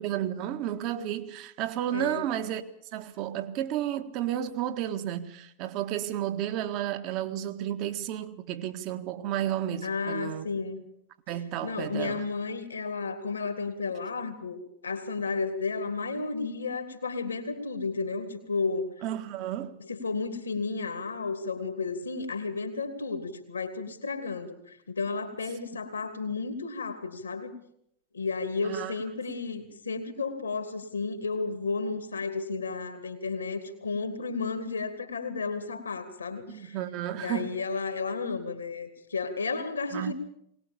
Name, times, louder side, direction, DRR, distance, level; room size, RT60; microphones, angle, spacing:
voice 1, 0.0-2.6 2.9-10.5 11.3-12.3 19.0-19.8 28.6-29.0 36.5-37.5 39.9-40.1, right 11 dB, 40° right, 1.7 m, -32 dB
voice 2, 1.9-2.3 9.8-10.8 11.6-18.9 19.9-27.5 28.1-36.8 37.2-40.1, left 4 dB, 75° left, 2.8 m, -33 dB
21.0 x 19.5 x 7.2 m
figure-of-eight pair, 90°, 0 cm